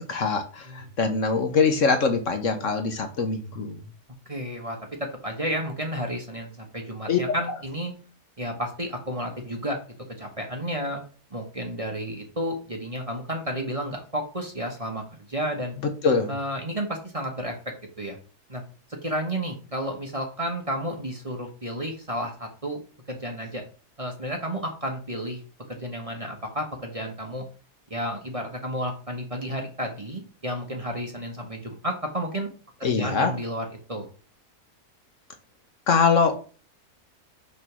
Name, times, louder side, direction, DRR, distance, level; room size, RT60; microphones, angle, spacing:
voice 1, 0.1-3.8 7.1-7.2 16.0-16.3 32.8-33.3 35.9-36.4, left 5 dB, 55° left, 6 dB, 1.2 m, -23 dB
voice 2, 4.3-7.9 8.4-9.8 10.2-11.0 11.3-15.8 16.3-18.2 18.5-18.6 19.0-22.8 23.1-23.6 24.0-25.4 25.7-27.4 27.9-32.5 32.8-34.1, equal, 25° right, 2 dB, 1.2 m, -32 dB
6.4 x 3.4 x 6.0 m, 0.37 s
omnidirectional pair, 1.7 m